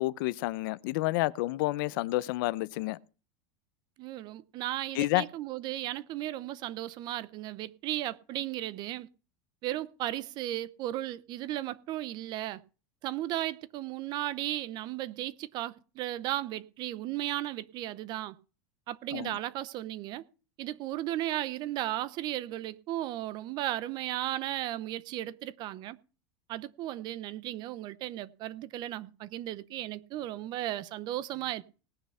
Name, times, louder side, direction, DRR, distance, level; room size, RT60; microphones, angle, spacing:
voice 1, 0.0-3.0 4.9-5.2 19.1-19.3, left 19 dB, 60° left, 0.6 m, -29 dB
voice 2, 4.0-9.1 9.6-12.6 13.0-18.4 18.9-20.2 20.6-26.0 26.5-31.6, right 14 dB, 35° right, 0.7 m, -35 dB
18.5 x 6.6 x 5.6 m
supercardioid pair, 160°, 13 cm